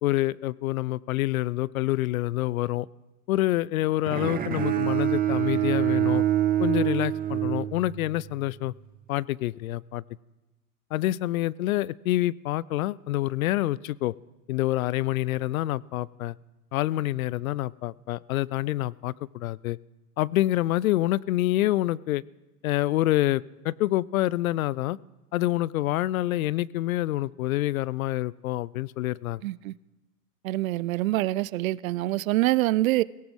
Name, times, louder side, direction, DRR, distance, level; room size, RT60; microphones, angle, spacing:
voice 1, 0.0-2.9 3.3-6.2 6.6-8.7 9.1-10.0 10.9-14.1 14.5-16.3 16.7-19.8 20.2-22.2 22.6-25.0 25.3-29.4, left 16 dB, 65° left, 0.5 m, -27 dB
Bowed string instrument, 4.1-8.3, right 12 dB, 20° right, 1.0 m, -25 dB
voice 2, 29.4-29.7 30.4-33.0, right 17 dB, 60° right, 0.5 m, -25 dB
17.5 x 17.0 x 3.6 m
hypercardioid pair, 120°, 46 cm